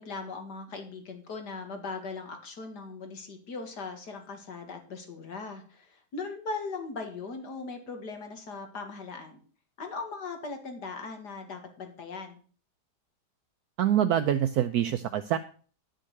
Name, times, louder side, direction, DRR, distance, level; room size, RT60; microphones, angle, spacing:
voice 1, 0.0-9.4 9.8-12.4, left 4 dB, 70° left, 5 dB, 2.4 m, -39 dB
voice 2, 13.8-15.4, right 10 dB, 70° right, 11 dB, 1.1 m, -25 dB
11.0 x 6.5 x 6.5 m, 0.41 s
omnidirectional pair, 1.9 m